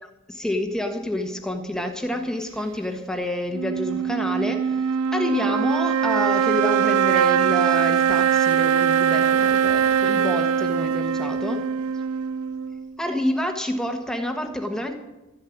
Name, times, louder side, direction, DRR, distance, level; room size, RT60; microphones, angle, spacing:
voice 1, 0.0-11.6 13.0-14.9, left 1 dB, 5° left, 4 dB, 1.3 m, -28 dB
sound 1, 3.5-12.9, right 8 dB, 80° right, 0.4 m, -22 dB
12.5 x 7.4 x 9.9 m, 1.1 s
head